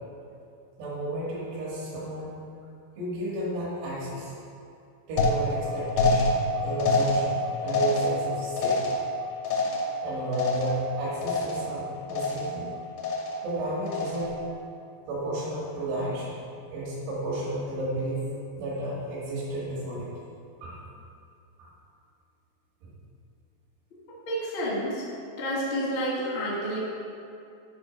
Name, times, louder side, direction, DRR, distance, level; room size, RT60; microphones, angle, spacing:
voice 1, 0.8-2.3 3.0-4.3 5.1-8.8 9.5-9.6 10.0-12.7 13.4-14.3 15.1-16.4 16.7-18.3 18.6-20.1 20.6-20.8 21.6-21.7 22.8-22.9, right 1 dB, 75° right, -7 dB, 3.4 m, -32 dB
sound 1, 5.2-10.9 11.2-11.8 12.1-12.7 13.0-13.5 13.9-14.4, left 2 dB, 85° left, 3.0 m, -27 dB
voice 2, 24.2-25.0 25.4-26.8, equal, 65° left, -6 dB, 1.2 m, -29 dB
8.6 x 3.6 x 4.9 m, 2.5 s
omnidirectional pair, 5.0 m